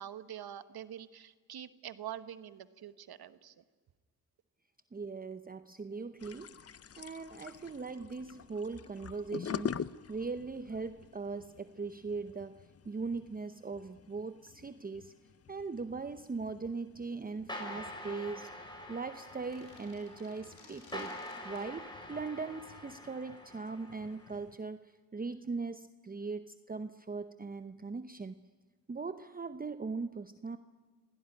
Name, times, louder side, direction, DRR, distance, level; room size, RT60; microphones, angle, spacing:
voice 1, 0.0-3.6, right 10 dB, 80° right, 13 dB, 1.3 m, -45 dB
voice 2, 4.9-6.7 7.0-15.1 15.5-18.5 18.9-21.2 21.4-28.4 28.9-30.6, right 4 dB, 25° right, 11 dB, 0.8 m, -40 dB
sound 1, 6.2-24.6, left 7 dB, 40° left, 0.6 m, -47 dB
sound 2, 17.5-24.3, left 1 dB, 10° left, 6.8 m, -46 dB
sound 3, 19.3-21.7, left 3 dB, 80° left, 6.1 m, -58 dB
27.0 x 17.5 x 9.9 m, 1.5 s
cardioid pair, 80°, 37 cm